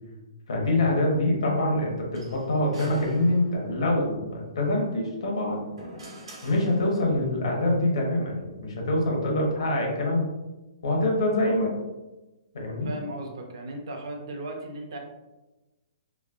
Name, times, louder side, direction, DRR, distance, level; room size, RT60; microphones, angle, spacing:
voice 1, 0.5-5.7 6.4-10.3 10.8-11.7 12.5-12.9, left 1 dB, 65° left, 0 dB, 0.9 m, -25 dB
sound 1, 2.1-3.9 5.2-7.3, right 1 dB, 75° right, 1.2 m, -47 dB
voice 2, 12.8-15.0, right 1 dB, 50° right, 2 dB, 0.5 m, -36 dB
3.2 x 2.6 x 2.4 m, 1.1 s
hypercardioid pair, 180°, 3 cm